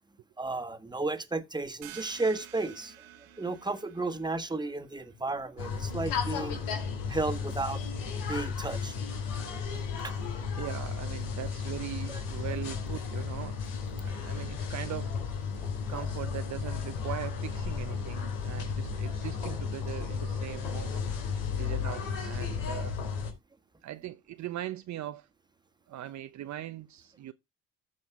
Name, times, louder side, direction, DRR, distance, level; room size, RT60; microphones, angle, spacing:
voice 1, 0.4-2.9 3.4-6.6 7.1-7.8 8.3-8.9 10.0-10.1 12.1-12.2, right 3 dB, 10° right, 1.6 m, -33 dB
sound 1, 1.8-7.2, right 12 dB, 80° right, 2.4 m, -52 dB
sound 2, 5.6-23.3, left 6 dB, 80° left, 3.6 m, -34 dB
voice 2, 10.6-13.6 14.0-15.2 15.9-21.1 21.6-23.0 23.8-25.3 25.9-27.3, right 13 dB, 50° right, 0.8 m, -40 dB
14.5 x 5.4 x 3.6 m
hypercardioid pair, 65°, 36 cm